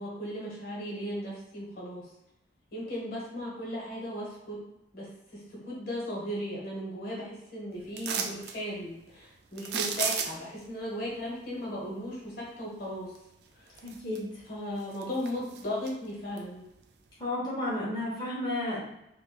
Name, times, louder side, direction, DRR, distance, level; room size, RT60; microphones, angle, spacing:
voice 1, 0.0-2.1 2.7-4.6 4.9-13.1 13.6-13.8 14.4-16.6, equal, 55° left, -5 dB, 1.2 m, -36 dB
sound 1, 8.0-8.6 9.6-10.6 13.1-13.2 13.7-14.4 14.8-15.9 16.4-16.5, right 6 dB, 65° right, 0.4 m, -33 dB
voice 2, 13.8-14.3 17.2-18.8, left 1 dB, 25° left, -8 dB, 1.0 m, -32 dB
4.3 x 2.5 x 2.3 m, 0.86 s
head